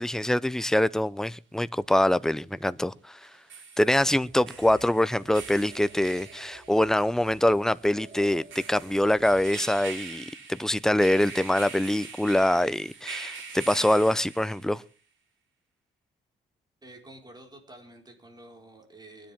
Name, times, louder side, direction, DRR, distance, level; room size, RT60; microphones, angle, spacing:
voice 1, 0.0-3.2 3.8-14.8, left 1 dB, 5° left, 0.7 m, -24 dB
sound 1, 0.6-0.7 3.2-14.8, right 5 dB, 75° right, 6.4 m, -44 dB
sound 2, 4.0-9.6, right 3 dB, 40° right, 2.7 m, -52 dB
voice 2, 16.8-19.3, right 1 dB, 20° right, 4.8 m, -49 dB
23.5 x 10.5 x 3.6 m
cardioid pair, 90°, 20 cm